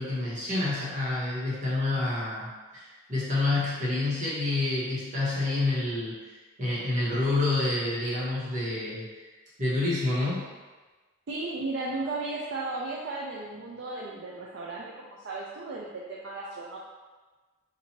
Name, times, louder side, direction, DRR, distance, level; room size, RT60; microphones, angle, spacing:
voice 1, 0.0-6.2 6.6-9.1 9.6-10.5, left 2 dB, 40° right, -8 dB, 1.2 m, -28 dB
voice 2, 11.3-16.8, right 3 dB, 60° right, -4 dB, 0.4 m, -35 dB
4.3 x 2.6 x 2.9 m, 1.3 s
head